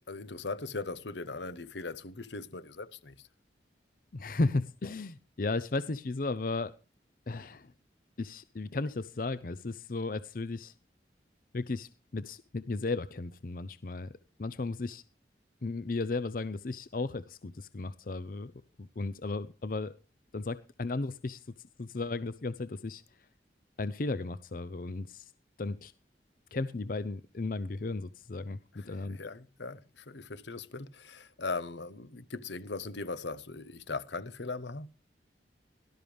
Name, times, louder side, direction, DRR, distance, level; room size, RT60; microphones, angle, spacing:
voice 1, 0.1-3.3 28.7-34.9, left 3 dB, 85° left, 1.0 m, -39 dB
voice 2, 4.1-6.7 7.3-7.7 8.2-10.7 11.5-14.1 14.4-15.0 15.6-18.5 18.8-19.9 20.3-21.4 21.8-23.0 23.8-25.3 25.6-25.9 26.5-29.2, left 3 dB, 50° left, 0.6 m, -35 dB
18.0 x 12.5 x 3.4 m
head